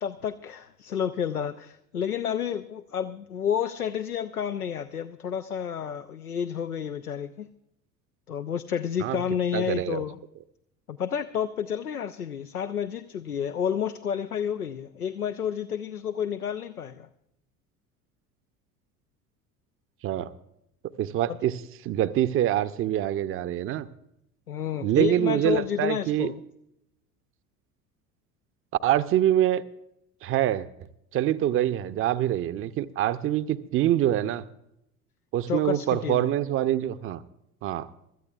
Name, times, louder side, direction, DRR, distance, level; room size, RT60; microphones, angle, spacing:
voice 1, 0.0-7.5 8.3-10.2 10.9-17.1 24.5-26.3 35.5-36.3, left 8 dB, 85° left, 9 dB, 0.6 m, -30 dB
voice 2, 9.5-10.0 20.0-20.3 21.0-21.6 21.8-23.9 24.8-26.3 28.8-29.6 30.2-30.7 31.1-34.4 35.3-37.2 37.6-37.9, right 12 dB, 30° right, 13 dB, 0.7 m, -25 dB
24.0 x 13.5 x 2.3 m, 0.80 s
figure-of-eight pair, 70°, 43 cm